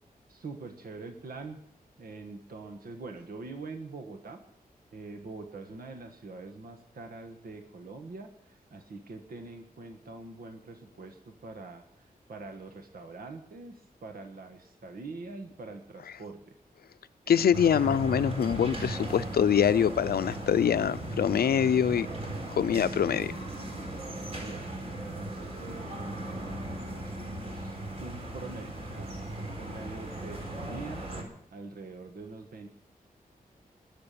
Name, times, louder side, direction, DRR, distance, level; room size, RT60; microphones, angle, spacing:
voice 1, 0.3-1.6 2.0-4.4 4.9-16.5 17.2-17.7 24.3-29.1 29.4-32.7, right 3 dB, 70° right, 5 dB, 1.6 m, -44 dB
voice 2, 17.3-22.1 22.6-23.3, left 8 dB, 85° left, 14 dB, 0.6 m, -24 dB
sound 1, 17.5-31.2, right 1 dB, 40° right, 4.2 m, -37 dB
21.0 x 7.5 x 6.9 m, 0.70 s
wide cardioid pair, 140°, 16 cm